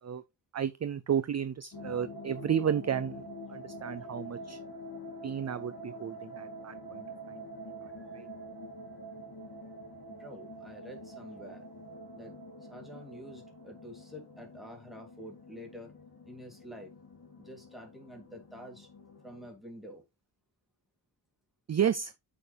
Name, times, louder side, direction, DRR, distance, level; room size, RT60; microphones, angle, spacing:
voice 1, 0.5-4.6 5.2-7.4 8.1-8.3 21.7-22.1, right 8 dB, 40° right, 0.4 m, -32 dB
sound 1, 1.7-19.5, equal, 50° left, 3.0 m, -46 dB
voice 2, 7.8-8.2 8.6-9.0 10.1-11.6 12.1-12.3 12.7-15.9 16.3-16.9 17.4-18.9 19.2-20.0, equal, ahead, 3.0 m, -48 dB
8.8 x 6.6 x 3.4 m
wide cardioid pair, 135°, 45 cm